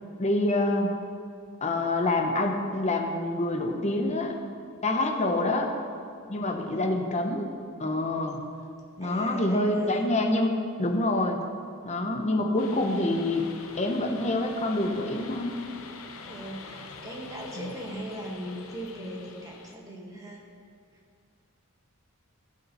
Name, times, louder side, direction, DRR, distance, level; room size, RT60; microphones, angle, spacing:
voice 1, 0.2-0.9 1.6-4.4 4.8-5.7 6.3-7.5 7.8-8.4 9.0-10.5 10.8-11.4 11.8-13.4 13.8-15.6, left 2 dB, 30° left, 3 dB, 0.9 m, -26 dB
voice 2, 5.1-5.6 6.4-6.9 9.0-10.0 16.2-20.4, equal, 15° right, -2 dB, 1.7 m, -39 dB
sound 1, 12.6-19.8, left 4 dB, 70° left, 0.8 m, -45 dB
14.5 x 5.5 x 5.6 m, 2.2 s
head